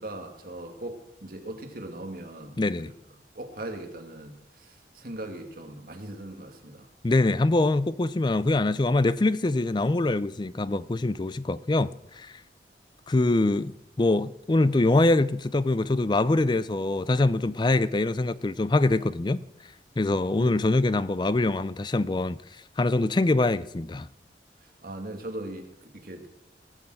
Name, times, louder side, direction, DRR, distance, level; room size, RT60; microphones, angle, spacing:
voice 1, 0.0-2.6 3.3-6.9 20.4-20.6 24.8-26.3, right 1 dB, 55° right, 2.2 m, -39 dB
voice 2, 2.6-2.9 7.0-12.3 13.1-19.4 20.0-22.4 22.8-24.1, left 2 dB, 25° left, 0.4 m, -24 dB
19.5 x 6.5 x 7.8 m
head